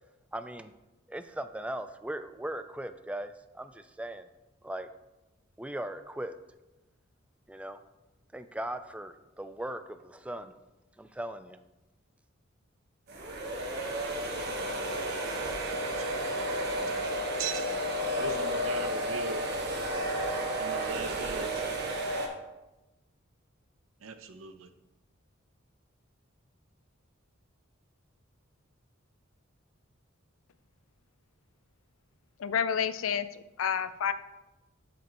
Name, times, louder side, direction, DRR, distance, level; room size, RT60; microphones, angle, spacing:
voice 1, 0.3-0.7 1.1-4.3 4.6-4.9 5.6-6.4 7.5-7.8 8.3-10.5 11.0-11.6, right 1 dB, 5° right, 10 dB, 0.3 m, -38 dB
sound 1, 13.1-22.3, right 1 dB, 55° right, 1.3 m, -32 dB
voice 2, 15.7-16.3 17.4-17.9 18.2-19.4 20.6-21.6 24.0-24.7, right 5 dB, 85° right, 8 dB, 0.7 m, -39 dB
voice 3, 32.4-33.3 33.6-34.1, left 7 dB, 80° left, 13 dB, 0.5 m, -29 dB
12.5 x 5.2 x 3.0 m, 1.0 s
head